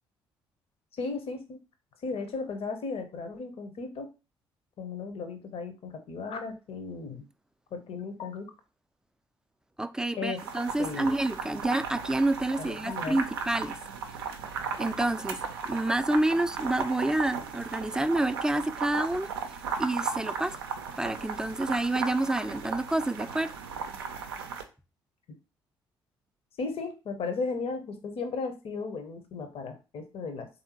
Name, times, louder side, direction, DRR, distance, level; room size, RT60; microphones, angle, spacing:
voice 1, 0.9-1.6 2.0-4.1 4.8-7.3 7.7-8.5 10.2-10.4 10.8-11.1 12.6-13.2 26.6-30.5, left 4 dB, 50° left, 0.8 m, -35 dB
voice 2, 9.8-13.8 14.8-19.3 19.8-20.6 21.0-23.5, right 2 dB, 5° right, 0.3 m, -28 dB
sound 1, 10.4-24.6, right 6 dB, 80° right, 0.4 m, -36 dB
3.5 x 2.7 x 2.9 m
figure-of-eight pair, 50°, 12 cm